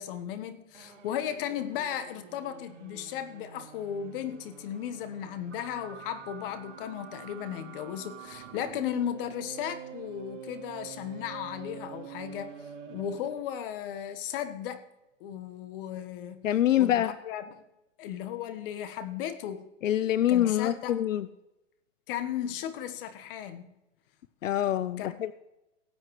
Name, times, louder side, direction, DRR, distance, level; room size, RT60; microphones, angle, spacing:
voice 1, 0.0-12.5 12.9-14.8 15.2-16.5 16.7-17.6 18.0-19.7 20.3-21.1 22.1-23.7 25.0-25.1, left 9 dB, 45° left, 1.4 m, -36 dB
sound 1, 0.7-13.5, right 7 dB, 70° right, 3.0 m, -47 dB
voice 2, 16.4-17.1 19.8-21.3 24.4-25.3, left 12 dB, 80° left, 0.6 m, -25 dB
18.5 x 8.6 x 3.2 m
hypercardioid pair, 130°, 38 cm